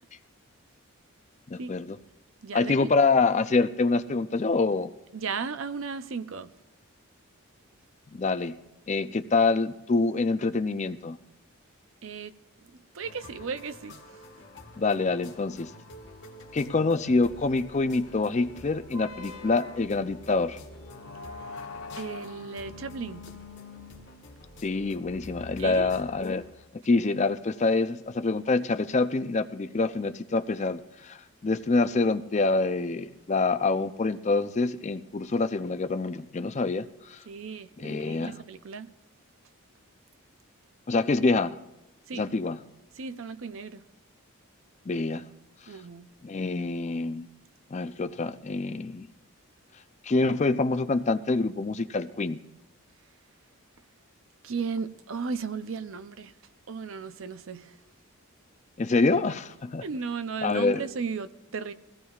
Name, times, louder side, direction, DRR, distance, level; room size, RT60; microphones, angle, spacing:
voice 1, 1.5-2.0 2.5-4.9 8.1-8.6 8.9-11.2 14.8-15.7 16.5-20.6 24.6-26.5 26.7-37.2 37.8-38.3 40.9-41.6 42.1-42.6 44.9-45.3 46.2-47.3 47.7-49.1 50.0-52.4 58.8-59.8 60.4-60.8, left 3 dB, 30° left, 0.4 m, -26 dB
voice 2, 2.4-3.0 5.1-6.5 12.0-12.3 12.9-14.2 21.5-21.6 22.0-23.2 25.6-25.9 37.3-38.9 42.1-42.2 43.0-43.8 45.7-46.1 54.4-56.3 56.7-57.7 59.8-61.7, right 5 dB, 60° right, 0.5 m, -35 dB
sound 1, 13.0-26.4, left 1 dB, 50° left, 1.5 m, -49 dB
sound 2, 18.9-26.7, left 3 dB, 70° left, 0.7 m, -44 dB
22.0 x 16.5 x 2.4 m
head